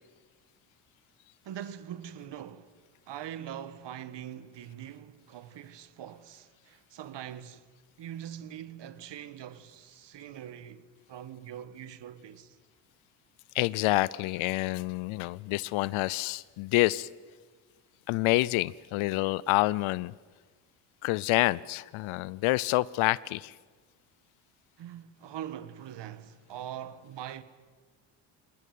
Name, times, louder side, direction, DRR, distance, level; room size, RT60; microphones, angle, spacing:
voice 1, 1.4-2.8 3.1-7.6 8.0-12.6 24.8-27.4, right 10 dB, 60° right, 1.5 m, -43 dB
voice 2, 13.5-17.1 18.1-20.1 21.0-23.5, left 19 dB, 75° left, 0.6 m, -27 dB
21.5 x 18.5 x 9.4 m
supercardioid pair, 70°, 48 cm